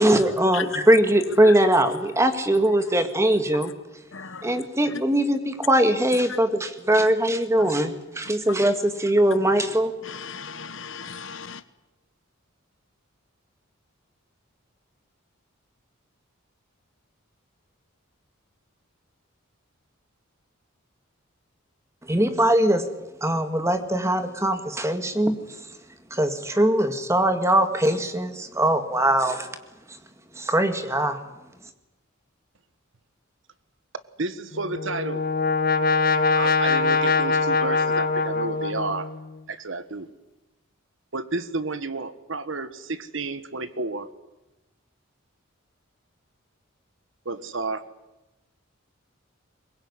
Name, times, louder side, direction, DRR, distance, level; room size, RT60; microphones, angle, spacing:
voice 1, 0.0-3.7 4.4-9.9 22.1-22.9 23.2-25.4 26.1-29.5 30.4-31.2, right 1 dB, 15° right, 1.9 m, -21 dB
voice 2, 4.1-4.6 6.9-7.0 10.0-11.6, left 6 dB, 65° left, 1.2 m, -36 dB
voice 3, 34.2-35.2 36.3-39.1 39.5-40.1 41.1-44.1 47.2-47.8, right 3 dB, 60° right, 1.4 m, -31 dB
Brass instrument, 34.5-39.3, left 4 dB, 45° left, 1.3 m, -23 dB
23.0 x 21.0 x 9.8 m
head